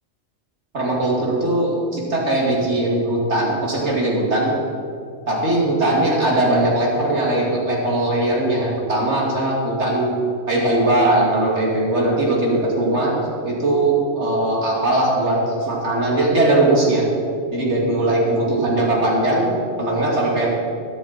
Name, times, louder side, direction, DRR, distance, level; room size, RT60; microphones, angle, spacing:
voice 1, 0.7-4.5 5.3-10.2 10.5-13.2 13.4-17.1 17.5-19.5 19.8-20.5, right 1 dB, 60° right, -3 dB, 3.0 m, -19 dB
21.0 x 7.2 x 4.4 m, 2.4 s
omnidirectional pair, 1.3 m